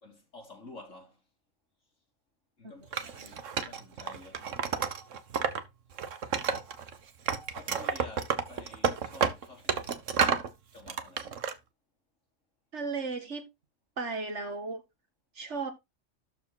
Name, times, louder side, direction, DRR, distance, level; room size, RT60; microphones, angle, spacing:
voice 1, 0.0-1.2 2.6-4.6 7.5-10.1 10.7-11.3, left 2 dB, 80° left, 4.2 m, -50 dB
Wood, 2.9-5.6 5.9-6.9 7.3-10.5 10.9-11.5, right 6 dB, 85° right, 1.4 m, -30 dB
voice 2, 12.7-13.4 14.0-14.8 15.4-15.7, right 4 dB, 65° right, 2.2 m, -35 dB
12.5 x 4.6 x 3.8 m
omnidirectional pair, 1.3 m